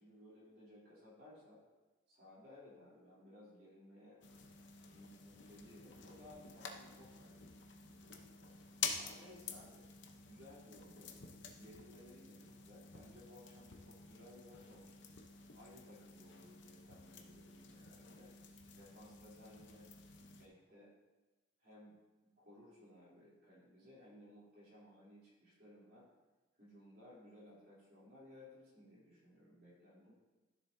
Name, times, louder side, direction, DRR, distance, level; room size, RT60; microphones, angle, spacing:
voice 1, 0.0-1.6 2.1-4.2 4.8-8.5 8.9-9.9 10.2-15.0 15.5-18.3 18.7-19.9 20.2-20.9 21.6-26.1 26.6-30.1, left 1 dB, 50° right, -7 dB, 3.2 m, -59 dB
sound 1, 4.2-20.5, left 6 dB, 60° left, 0.8 m, -49 dB
13.0 x 7.3 x 2.7 m, 1.2 s
head